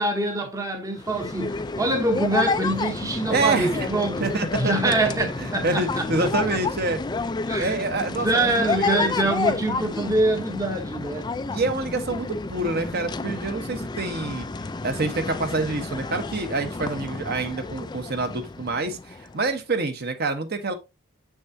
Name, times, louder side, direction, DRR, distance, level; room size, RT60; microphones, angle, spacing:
voice 1, 0.0-4.3 4.6-6.1 7.5-7.7 8.2-11.3, right 1 dB, 15° right, 0.9 m, -25 dB
sound 1, 1.0-19.4, left 3 dB, 20° left, 0.3 m, -30 dB
voice 2, 3.3-3.9 4.2-4.7 5.4-7.0 7.6-9.1 11.5-14.5 14.8-20.7, right 3 dB, 50° right, 1.1 m, -27 dB
7.2 x 6.3 x 2.7 m
head